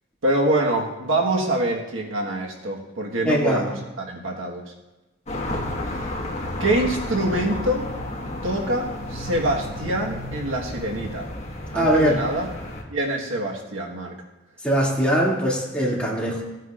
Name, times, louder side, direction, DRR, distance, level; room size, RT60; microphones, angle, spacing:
voice 1, 0.2-4.6 6.6-7.8 8.4-11.3 11.7-12.5 12.9-14.1, right 1 dB, 85° right, 0 dB, 1.5 m, -25 dB
voice 2, 3.2-3.7 11.7-12.2 14.6-16.4, equal, 5° left, -6 dB, 2.6 m, -21 dB
sound 1, 5.3-12.8, left 1 dB, 35° left, 1.6 m, -32 dB
17.5 x 9.1 x 2.5 m, 1.0 s
head